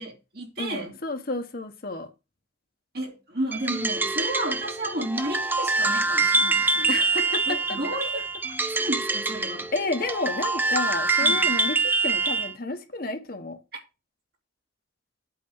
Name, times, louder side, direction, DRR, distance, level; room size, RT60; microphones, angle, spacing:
voice 1, 0.0-1.0 2.9-6.9 7.5-8.2 8.7-9.7 11.2-11.5, right 1 dB, 55° right, 2.9 m, -32 dB
voice 2, 0.6-2.1 6.9-7.8 8.7-8.8 9.7-11.8 12.0-13.6, left 2 dB, 50° left, 1.3 m, -31 dB
sound 1, 3.5-12.5, right 3 dB, 10° right, 0.4 m, -25 dB
8.4 x 4.3 x 7.2 m
head